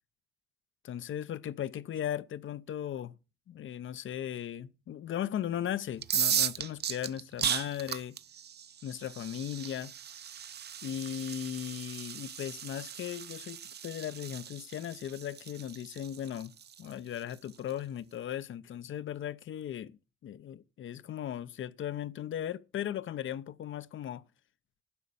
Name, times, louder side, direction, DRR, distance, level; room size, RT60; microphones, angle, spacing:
voice 1, 0.8-3.1 3.5-8.2 8.8-9.9 10.8-16.5 16.8-24.2, left 10 dB, 70° left, 0.6 m, -37 dB
sound 1, 6.0-17.7, right 8 dB, 55° right, 0.6 m, -36 dB
11.5 x 5.3 x 8.4 m
cardioid pair, 90°, 21 cm